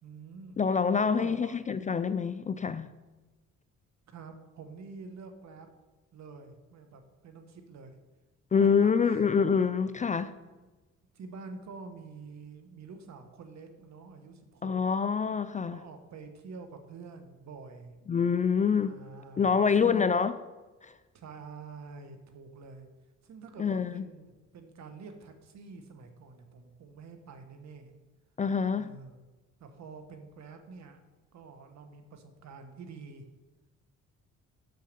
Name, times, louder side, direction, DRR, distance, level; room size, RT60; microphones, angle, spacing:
voice 1, 0.0-0.6 1.0-1.6 4.1-5.7 6.1-8.0 8.6-9.3 10.0-10.7 11.1-14.8 15.7-18.0 18.8-20.2 21.1-22.9 23.2-27.9 28.8-29.3 29.6-31.0 31.3-33.2, right 4 dB, 65° right, 1.3 m, -47 dB
voice 2, 0.6-2.9 8.5-10.3 14.6-15.8 18.1-19.0 19.4-20.3 20.8-20.9 23.6-24.0 28.4-28.9, left 6 dB, 25° left, 0.3 m, -26 dB
6.5 x 6.5 x 6.6 m
cardioid pair, 90°, 30 cm